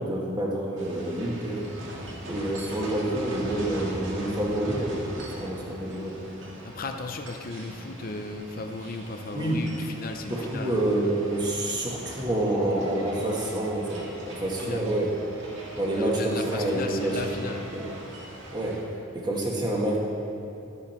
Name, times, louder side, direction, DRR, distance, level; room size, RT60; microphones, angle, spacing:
voice 1, 0.0-1.6 2.2-6.2 9.3-9.7 10.3-15.1 15.8-17.4 17.7-17.9 18.5-18.9 19.1-20.0, right 1 dB, 20° right, -3 dB, 1.6 m, -28 dB
sound 1, 0.8-18.8, right 1 dB, 70° right, 1.9 m, -41 dB
voice 2, 6.6-10.8 14.6-14.8 15.9-17.7, left 3 dB, 45° left, 5 dB, 0.6 m, -36 dB
12.5 x 8.5 x 4.4 m, 2.8 s
head